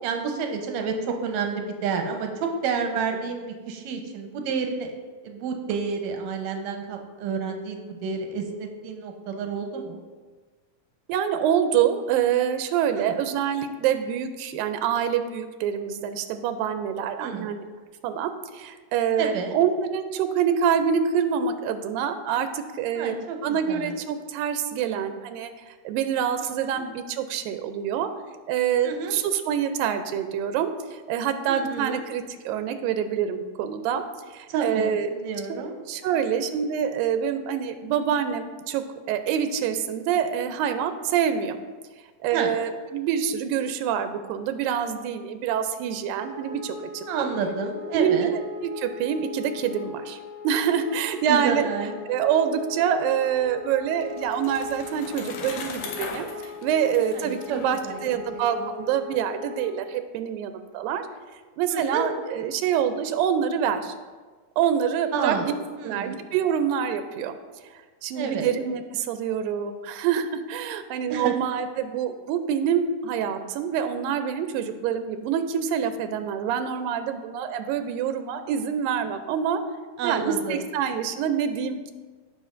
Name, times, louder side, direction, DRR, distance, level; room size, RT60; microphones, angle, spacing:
voice 1, 0.0-4.9 5.2-10.0 13.0-13.1 17.2-17.5 19.2-19.6 22.9-24.0 26.4-26.8 28.8-29.1 31.5-32.0 34.5-35.7 36.0-36.4 42.3-42.5 47.1-48.3 51.3-52.0 57.1-58.2 58.6-58.7 61.7-62.1 65.1-65.5 65.8-66.2 68.2-68.5 71.1-71.3 80.0-80.6, right 5 dB, 70° right, 3 dB, 1.8 m, -30 dB
voice 2, 11.1-17.6 18.0-23.2 23.4-28.1 28.5-34.0 34.3-35.1 35.5-41.6 42.2-47.3 47.9-50.2 50.4-51.7 52.1-56.3 56.6-61.1 61.6-63.9 64.6-65.5 65.8-67.4 68.0-79.6 80.0-81.9, right 8 dB, 90° right, 9 dB, 2.3 m, -26 dB
Wind instrument woodwind instrument, 46.2-59.6, left 5 dB, 35° left, 2.1 m, -39 dB
Bicycle, 53.4-58.5, left 5 dB, 80° left, 2.7 m, -39 dB
16.0 x 5.8 x 2.5 m, 1.4 s
omnidirectional pair, 4.0 m